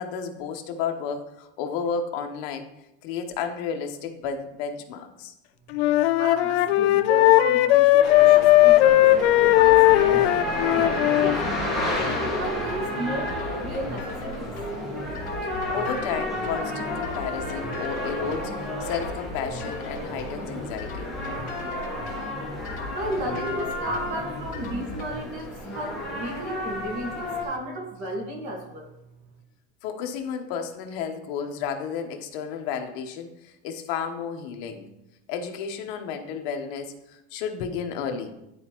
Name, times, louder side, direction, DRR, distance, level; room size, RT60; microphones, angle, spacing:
voice 1, 0.0-2.7 3.0-5.3 15.7-21.1 29.8-34.9 35.3-38.3, left 6 dB, 55° left, 5 dB, 0.9 m, -32 dB
Wind instrument woodwind instrument, 5.7-11.4, left 16 dB, 80° left, 0.5 m, -17 dB
voice 2, 6.2-11.6 12.0-14.5 22.9-28.9, right 1 dB, 50° right, 0 dB, 1.6 m, -33 dB
sound 1, 8.0-27.5, left 1 dB, ahead, 1.2 m, -32 dB
sound 2, 9.5-25.2, left 2 dB, 25° left, 1.6 m, -38 dB
11.0 x 4.3 x 2.9 m, 0.87 s
supercardioid pair, 170°, 33 cm